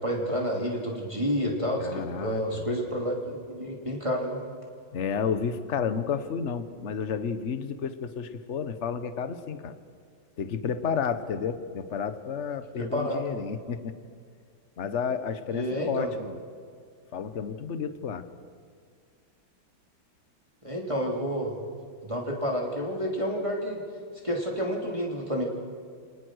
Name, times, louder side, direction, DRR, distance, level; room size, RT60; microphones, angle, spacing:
voice 1, 0.0-4.4 12.8-13.4 15.5-16.1 20.6-21.6 22.0-23.8 24.2-25.4, equal, 15° right, -1 dB, 3.0 m, -29 dB
voice 2, 1.8-2.6 4.9-9.7 10.4-14.0 14.8-16.4 17.1-18.2, left 6 dB, 45° left, 11 dB, 1.2 m, -31 dB
28.5 x 19.5 x 6.4 m, 2.2 s
omnidirectional pair, 2.1 m